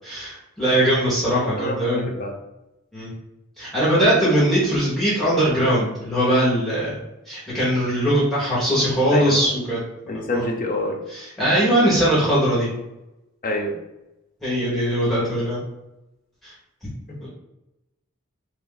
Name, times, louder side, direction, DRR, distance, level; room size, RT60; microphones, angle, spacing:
voice 1, 0.0-2.0 2.9-3.1 3.6-7.0 7.3-9.8 10.3-10.4 11.1-12.7 14.4-15.6 16.4-16.5 17.2-17.3, equal, ahead, -10 dB, 1.1 m, -20 dB
voice 2, 1.6-2.3 9.1-9.4 10.1-11.0 13.4-13.8, left 1 dB, 40° left, 0 dB, 0.6 m, -26 dB
3.3 x 2.6 x 3.8 m, 0.94 s
head